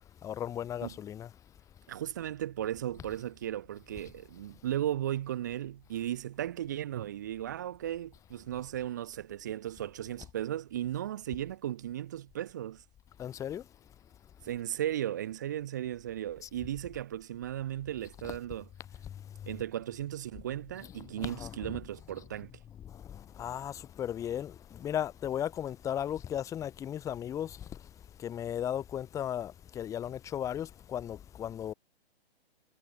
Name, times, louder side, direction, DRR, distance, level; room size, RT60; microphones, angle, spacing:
voice 1, 0.2-1.3 13.2-13.6 18.2-18.4 20.8-21.7 22.8-27.6 28.2-31.7, left 10 dB, 10° left, 0.7 m, -36 dB
voice 2, 1.9-12.8 14.4-18.7 19.5-22.5, right 12 dB, 20° right, 0.3 m, -36 dB
hypercardioid pair, 145°, 31 cm